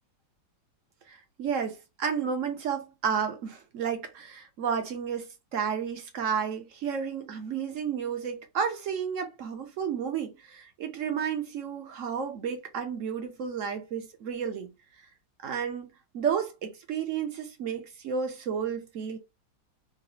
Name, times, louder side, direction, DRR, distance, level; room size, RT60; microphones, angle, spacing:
voice 1, 1.1-14.7 15.4-19.2, right 7 dB, 60° right, 0.8 m, -32 dB
3.9 x 2.0 x 3.9 m
omnidirectional pair, 2.1 m